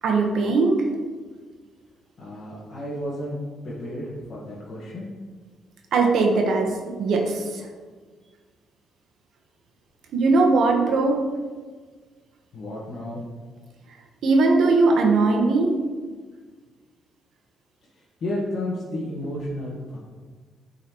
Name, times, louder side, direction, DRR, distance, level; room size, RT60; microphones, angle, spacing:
voice 1, 0.0-0.8 5.9-7.7 10.1-11.2 14.2-15.7, right 3 dB, 70° right, 1 dB, 1.1 m, -20 dB
voice 2, 2.2-3.4 3.6-5.1 12.5-13.2 17.9-20.0, left 1 dB, 55° left, -6 dB, 1.4 m, -32 dB
8.3 x 4.0 x 3.0 m, 1.5 s
cardioid pair, 90°, 0 cm